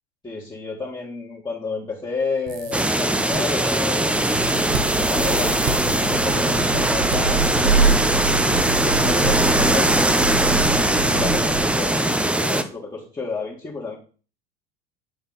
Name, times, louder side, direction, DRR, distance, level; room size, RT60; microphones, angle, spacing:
voice 1, 0.2-5.6 6.1-7.4 7.7-10.6 11.1-14.0, left 4 dB, 10° left, -5 dB, 1.6 m, -31 dB
sound 1, 2.5-3.4 4.0-4.9 5.4-5.7 6.8-7.2 8.1-8.7 9.9-10.3 10.5-10.6 11.8-11.9 12.3-12.4, right 5 dB, 55° right, 1.1 m, -33 dB
sound 2, 2.7-12.6, right 1 dB, 5° right, 0.5 m, -20 dB
Thunder / Rain, 4.1-12.0, right 4 dB, 75° right, 3.5 m, -26 dB
9.1 x 3.9 x 4.0 m, 0.38 s
figure-of-eight pair, 75°, 32 cm